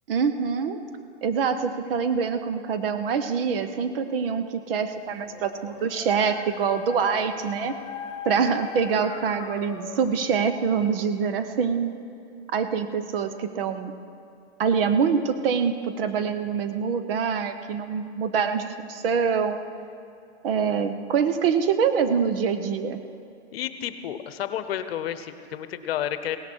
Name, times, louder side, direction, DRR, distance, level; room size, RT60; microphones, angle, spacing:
voice 1, 0.1-0.8 1.2-7.7 8.2-11.9 12.5-13.9 14.6-19.6 20.4-23.0, right 6 dB, 55° right, 10 dB, 1.1 m, -25 dB
Dog, 5.1-10.2, left 7 dB, 15° left, 0.9 m, -39 dB
voice 2, 23.5-26.4, left 10 dB, 60° left, 11 dB, 1.0 m, -31 dB
17.0 x 13.5 x 4.5 m, 2.6 s
hypercardioid pair, 140°, 34 cm